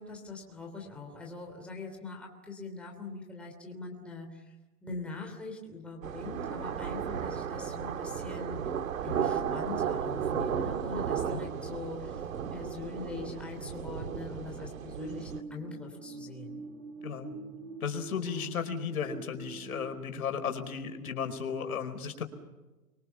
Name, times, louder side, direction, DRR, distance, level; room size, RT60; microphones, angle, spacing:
voice 1, 0.0-4.5 4.8-8.6 9.0-16.6 18.2-18.5, left 3 dB, ahead, 0 dB, 3.2 m, -42 dB
sound 1, 6.0-15.4, right 8 dB, 55° right, 2.2 m, -34 dB
sound 2, 14.9-20.0, right 5 dB, 25° right, 2.3 m, -44 dB
voice 2, 17.0-17.3 17.8-22.2, left 7 dB, 65° left, 7 dB, 4.7 m, -35 dB
29.0 x 24.5 x 7.1 m, 1.2 s
hypercardioid pair, 170°, 47 cm